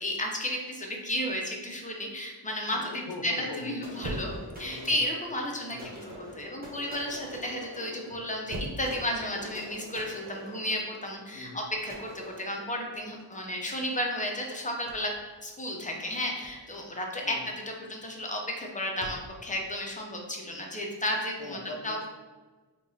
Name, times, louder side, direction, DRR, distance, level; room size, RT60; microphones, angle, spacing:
voice 1, 0.0-2.9 3.2-4.3 4.6-5.8 6.2-15.1 15.4-21.6 21.8-22.0, left 1 dB, 20° left, 0 dB, 0.6 m, -33 dB
voice 2, 2.7-3.7 4.7-5.1 5.7-6.0 11.3-11.6 17.2-17.5 21.4-22.1, left 2 dB, 75° left, 1 dB, 0.6 m, -41 dB
sound 1, 3.8-13.5, equal, 20° right, 1.1 m, -46 dB
sound 2, 4.0-19.2, right 1 dB, 45° right, 0.6 m, -45 dB
3.5 x 2.9 x 2.7 m, 1.3 s
wide cardioid pair, 45°, 43 cm